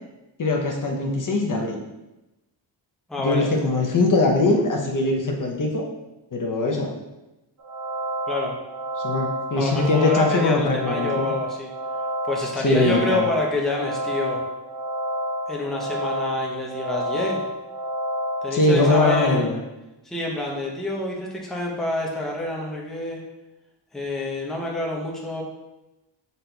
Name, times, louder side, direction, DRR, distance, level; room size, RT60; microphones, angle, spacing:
voice 1, 0.4-1.8 3.2-5.9 6.3-6.9 9.0-11.3 12.6-13.2 18.5-19.6, left 2 dB, 45° left, 1 dB, 0.7 m, -21 dB
voice 2, 3.1-3.5 8.3-8.6 9.5-11.7 12.2-14.4 15.5-17.4 18.4-19.5 20.0-23.2 23.9-25.4, left 2 dB, ahead, -2 dB, 0.6 m, -28 dB
sound 1, 7.6-19.4, equal, 40° right, 0.6 m, -29 dB
5.9 x 4.0 x 2.2 m, 0.99 s
wide cardioid pair, 125°, 45 cm